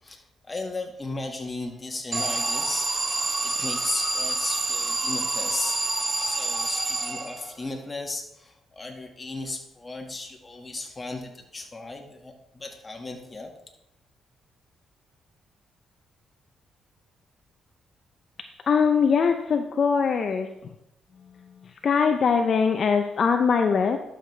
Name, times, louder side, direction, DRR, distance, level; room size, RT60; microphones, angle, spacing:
voice 1, 0.0-5.8 6.2-13.5, left 2 dB, 25° left, 2 dB, 1.8 m, -36 dB
Alarm, 2.1-7.7, right 3 dB, 30° right, 0.8 m, -27 dB
voice 2, 18.7-20.5 21.8-24.0, left 6 dB, 55° left, 6 dB, 0.6 m, -21 dB
11.5 x 6.5 x 3.3 m, 0.84 s
cardioid pair, 80°, 0 cm